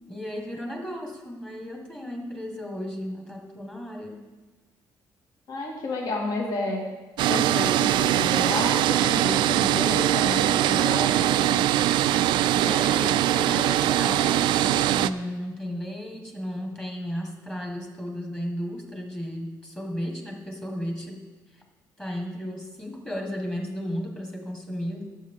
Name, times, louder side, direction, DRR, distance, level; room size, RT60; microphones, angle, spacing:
voice 1, 0.1-4.2 12.5-21.2 21.5-21.6 22.0-25.0, equal, 10° left, 1 dB, 1.6 m, -34 dB
voice 2, 5.5-6.8 7.3-11.7, left 2 dB, 55° left, -1 dB, 2.0 m, -31 dB
sound 1, 7.2-15.1, right 13 dB, 75° right, 0.3 m, -22 dB
17.5 x 7.6 x 3.7 m, 1.2 s
cardioid pair, 160°, 8 cm